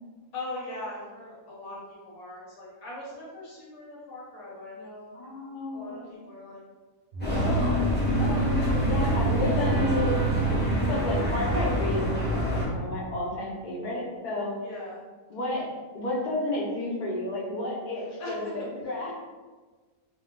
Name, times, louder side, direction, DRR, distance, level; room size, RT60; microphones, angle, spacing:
voice 1, 0.3-5.1 5.7-6.6 7.6-8.8 14.6-15.0 18.2-18.4, left 2 dB, 85° left, -6 dB, 1.1 m, -41 dB
voice 2, 5.1-6.1 8.8-10.2 10.5-14.6 15.3-15.7 15.9-19.1, left 2 dB, 60° left, -3 dB, 0.4 m, -31 dB
sound 1, 7.1-12.7, right 5 dB, 60° right, 0.7 m, -31 dB
sound 2, 7.2-12.7, left 1 dB, 10° left, 0.5 m, -26 dB
2.5 x 2.1 x 3.5 m, 1.4 s
omnidirectional pair, 1.5 m